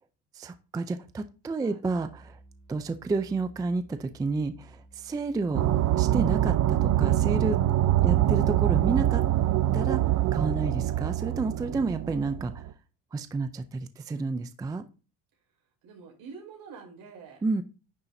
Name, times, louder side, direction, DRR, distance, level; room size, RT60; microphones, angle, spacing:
voice 1, 0.3-2.4 2.7-5.6 5.9-7.6 8.0-9.2 9.7-10.0 10.3-12.6 13.1-14.8 17.4-17.6, right 3 dB, 10° right, 10 dB, 0.4 m, -30 dB
sound 1, 1.8-7.1, right 2 dB, 15° left, 2.4 m, -54 dB
sound 2, 5.5-12.7, right 13 dB, 45° right, 0.7 m, -24 dB
voice 2, 15.8-17.4, right 5 dB, 65° right, 0 dB, 5.1 m, -47 dB
10.0 x 6.9 x 2.6 m, 0.33 s
cardioid pair, 140°, 39 cm